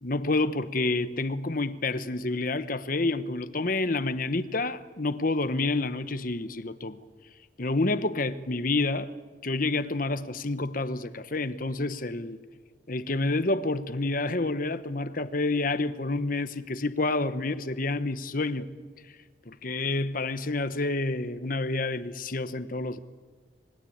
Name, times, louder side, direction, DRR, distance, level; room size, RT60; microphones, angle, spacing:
voice 1, 0.0-7.0 7.6-9.1 9.4-12.4 12.9-18.7 19.5-23.0, left 2 dB, 45° left, 1.1 m, -28 dB
27.0 x 21.0 x 8.8 m
head